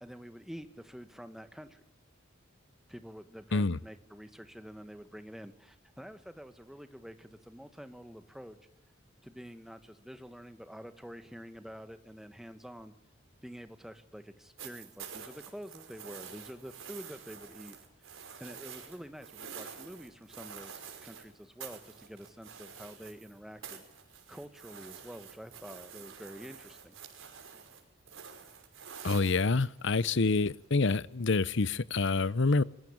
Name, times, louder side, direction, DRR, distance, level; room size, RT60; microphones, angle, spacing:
voice 1, 0.0-1.8 2.9-8.6 9.2-12.9 13.4-23.8 24.3-27.0, equal, ahead, 1.9 m, -48 dB
sound 1, 14.6-21.3 21.6-23.3 23.6-30.0 31.1-31.2, right 7 dB, 90° right, 5.7 m, -48 dB
voice 2, 29.0-32.6, left 3 dB, 65° left, 0.9 m, -27 dB
25.0 x 21.5 x 8.8 m
head